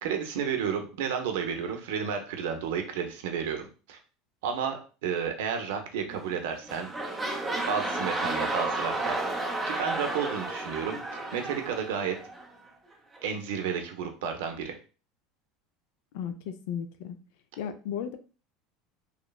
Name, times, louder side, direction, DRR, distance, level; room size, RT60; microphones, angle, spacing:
voice 1, 0.0-4.0 4.4-6.9 7.6-9.2 9.7-11.0 11.3-12.2 13.2-14.8, right 7 dB, 85° right, 5 dB, 0.5 m, -32 dB
sound 1, 6.1-6.4 6.6-12.5 13.1-13.2, right 2 dB, 5° right, 0.5 m, -32 dB
voice 2, 16.1-17.2 17.6-18.2, left 8 dB, 75° left, 9 dB, 0.4 m, -35 dB
3.0 x 2.0 x 2.2 m, 0.35 s
supercardioid pair, 140°, 0 cm